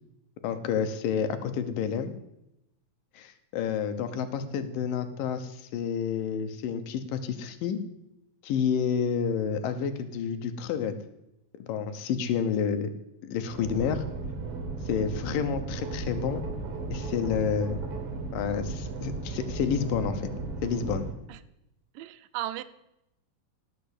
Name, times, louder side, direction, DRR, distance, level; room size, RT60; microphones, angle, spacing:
voice 1, 0.4-2.1 3.1-7.8 8.4-10.9 11.6-12.9 13.2-14.0 14.9-16.4 16.9-17.8 18.3-20.3 20.6-21.1, left 7 dB, 75° left, 9 dB, 2.7 m, -29 dB
sound 1, 13.5-21.1, right 3 dB, 50° right, 2.3 m, -35 dB
voice 2, 22.0-22.6, right 13 dB, 80° right, 13 dB, 2.2 m, -35 dB
17.5 x 6.0 x 8.2 m, 0.85 s
omnidirectional pair, 4.0 m